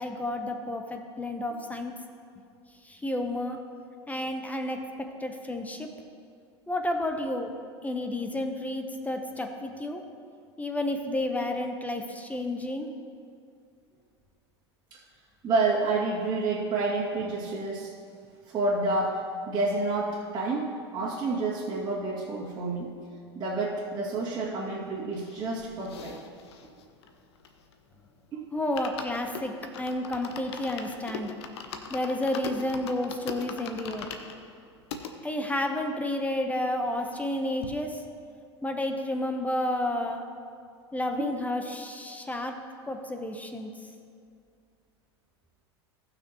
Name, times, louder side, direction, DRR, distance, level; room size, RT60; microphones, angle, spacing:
voice 1, 0.0-1.9 2.8-3.6 4.1-5.9 6.7-7.5 7.8-10.0 10.6-12.9 28.5-31.4 31.9-34.1 35.2-38.0 38.6-40.2 40.9-42.5 42.9-43.7, left 1 dB, 10° left, 4 dB, 0.9 m, -31 dB
voice 2, 15.4-17.9 18.5-19.2 19.5-22.9 23.3-26.2 28.3-28.4, right 3 dB, 30° right, -8 dB, 2.3 m, -29 dB
sound 1, 25.1-27.9 28.2-28.3 28.6-35.1 35.7-35.8 36.0-36.1 36.4-37.3 37.6-37.7, left 5 dB, 70° left, 0.9 m, -41 dB
18.0 x 6.1 x 3.0 m, 2.3 s
hypercardioid pair, 85°, 14 cm